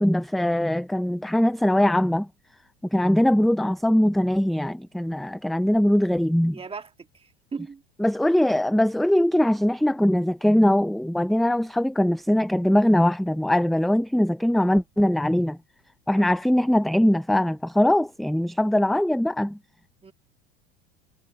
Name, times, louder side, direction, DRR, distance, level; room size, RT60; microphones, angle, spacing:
voice 1, 0.0-2.3 2.9-6.6 8.0-15.6 16.1-19.6, left 1 dB, ahead, 0.5 m, -21 dB
voice 2, 6.5-7.8 16.2-16.4 18.8-18.9 20.0-20.1, right 5 dB, 20° right, 1.7 m, -39 dB
hypercardioid pair, 90°, 29 cm